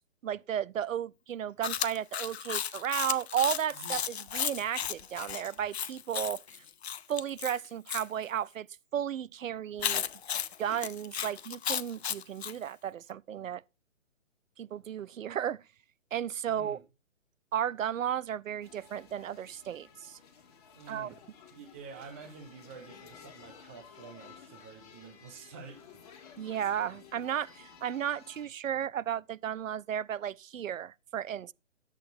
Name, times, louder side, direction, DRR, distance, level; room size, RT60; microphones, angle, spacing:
voice 1, 0.2-6.4 7.1-8.7 8.9-10.0 10.6-13.6 14.6-15.6 16.1-16.8 17.5-20.2 20.9-21.1 26.4-31.5, right 9 dB, 80° right, 0.6 m, -34 dB
Chewing mastication, 1.6-8.1 9.8-12.6, left 9 dB, 55° left, 0.7 m, -34 dB
voice 2, 16.5-16.8 20.7-21.2 21.5-26.1, right 5 dB, 10° right, 0.7 m, -49 dB
sound 1, 18.6-28.5, left 7 dB, 30° left, 2.2 m, -54 dB
12.0 x 8.3 x 4.3 m
hypercardioid pair, 160°, 39 cm